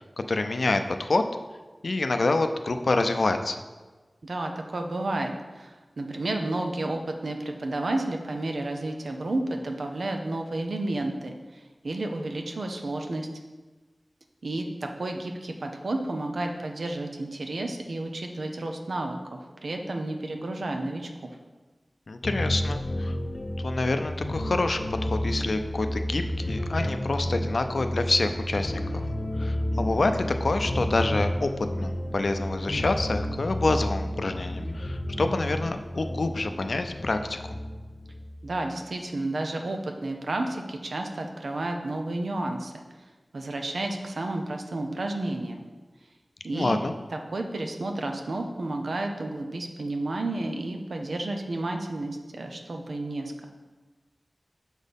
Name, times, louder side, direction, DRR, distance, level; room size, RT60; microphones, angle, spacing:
voice 1, 0.2-1.2 1.8-3.6 22.1-23.2 23.6-29.1 29.4-31.5 31.8-37.4 46.5-46.9, left 2 dB, 75° left, 7 dB, 0.4 m, -27 dB
voice 2, 4.2-11.3 11.8-13.3 14.4-21.3 38.4-42.7 43.3-45.6 46.4-46.8 47.1-53.4, right 2 dB, 85° right, 4 dB, 0.7 m, -31 dB
sound 1, 22.2-38.6, left 1 dB, 50° left, 0.8 m, -31 dB
6.2 x 4.2 x 5.2 m, 1.3 s
wide cardioid pair, 50°, 0 cm